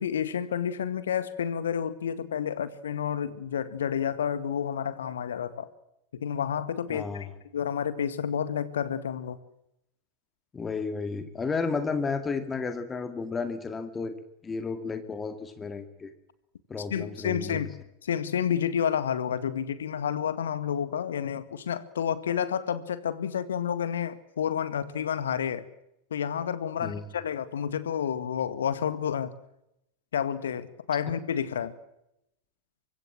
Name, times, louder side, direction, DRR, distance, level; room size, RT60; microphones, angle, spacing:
voice 1, 0.0-5.7 6.1-9.4 16.9-17.7 18.0-25.7 26.1-29.3 30.1-31.7, left 8 dB, 65° left, 14 dB, 2.0 m, -30 dB
voice 2, 6.9-7.3 10.5-14.1 14.4-16.1 16.7-17.7 26.8-27.0, left 4 dB, 15° left, 9 dB, 2.2 m, -32 dB
25.0 x 23.0 x 7.6 m, 0.83 s
figure-of-eight pair, 90°, 0 cm